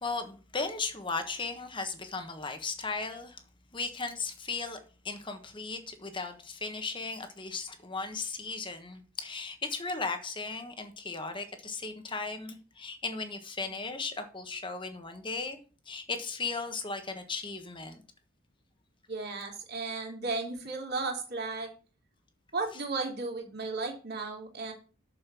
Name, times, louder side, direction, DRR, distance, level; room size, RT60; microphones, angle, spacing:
voice 1, 0.0-3.4 3.7-4.8 5.0-15.6 15.9-18.0, left 4 dB, 25° left, 1.4 m, -36 dB
voice 2, 19.1-21.7 22.5-24.7, right 3 dB, 50° right, 3.1 m, -34 dB
6.9 x 6.9 x 7.0 m
head